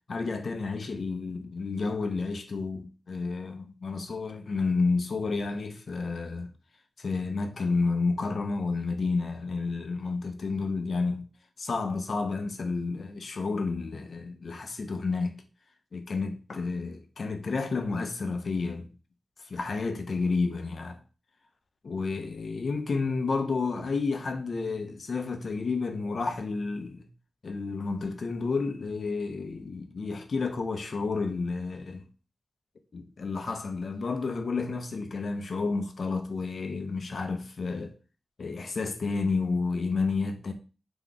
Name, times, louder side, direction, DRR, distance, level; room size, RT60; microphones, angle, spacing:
voice 1, 0.1-6.5 7.0-11.3 11.6-15.4 15.9-18.9 19.5-21.0 21.8-27.1 27.4-32.0 32.9-37.9 38.4-40.5, left 4 dB, 60° left, 0.7 m, -30 dB
3.5 x 3.0 x 3.8 m
wide cardioid pair, 85°, 0 cm